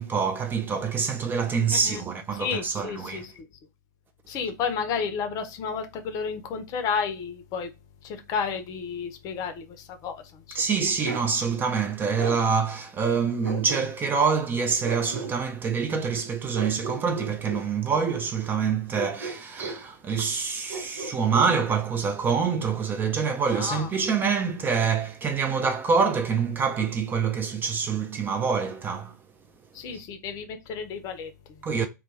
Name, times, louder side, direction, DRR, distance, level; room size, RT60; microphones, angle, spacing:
voice 1, 0.0-3.3 10.5-29.1 31.6-31.9, right 5 dB, 20° right, 0.3 m, -26 dB
voice 2, 1.7-2.0 2.3-3.3 4.3-7.7 8.0-10.6 23.5-23.9 29.7-31.6, left 6 dB, 35° left, 0.5 m, -32 dB
Bark, 11.0-11.3 12.2-12.4 13.4-14.2 14.8-15.3 16.5-17.7 18.9-19.8 20.7-21.6, right 3 dB, 85° right, 0.7 m, -35 dB
2.2 x 2.2 x 3.1 m
figure-of-eight pair, 95°, 10 cm